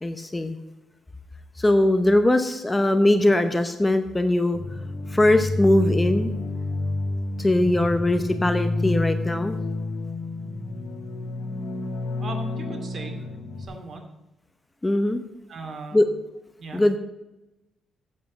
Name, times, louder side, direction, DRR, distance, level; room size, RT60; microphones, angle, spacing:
voice 1, 0.0-0.6 1.6-4.6 5.1-6.3 7.4-9.5 14.8-15.2 15.9-16.1 16.7-17.0, left 1 dB, 15° left, 8 dB, 0.7 m, -21 dB
sound 1, 4.5-13.6, left 2 dB, 70° left, 2.4 m, -29 dB
voice 2, 12.2-13.2 13.6-14.0 15.5-16.0 16.6-16.8, right 3 dB, 45° right, 3 dB, 2.3 m, -38 dB
8.2 x 7.4 x 7.6 m, 0.98 s
cardioid pair, 120°, 0 cm